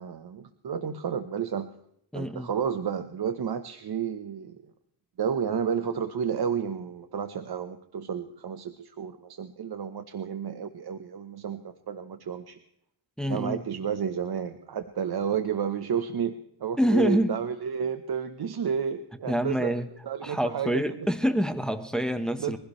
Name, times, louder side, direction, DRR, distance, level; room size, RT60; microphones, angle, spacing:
voice 1, 0.0-1.7 2.1-4.6 5.2-12.6 13.3-19.7 20.0-21.0 22.4-22.6, right 7 dB, 60° right, 9 dB, 1.1 m, -31 dB
voice 2, 2.1-2.5 13.2-13.6 16.8-17.3 19.3-19.9 20.2-22.6, equal, ahead, 9 dB, 1.1 m, -26 dB
23.0 x 16.5 x 3.2 m, 0.72 s
wide cardioid pair, 125°, 43 cm